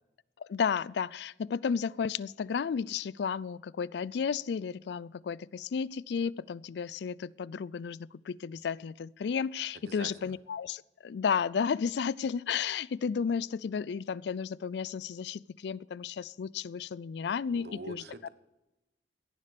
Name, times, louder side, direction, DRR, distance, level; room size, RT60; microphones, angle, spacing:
voice 1, 0.5-18.3, left 6 dB, 70° left, 23 dB, 0.3 m, -33 dB
voice 2, 9.9-10.4 17.5-18.3, right 2 dB, 60° right, 11 dB, 1.1 m, -45 dB
16.5 x 11.0 x 5.1 m, 1.0 s
head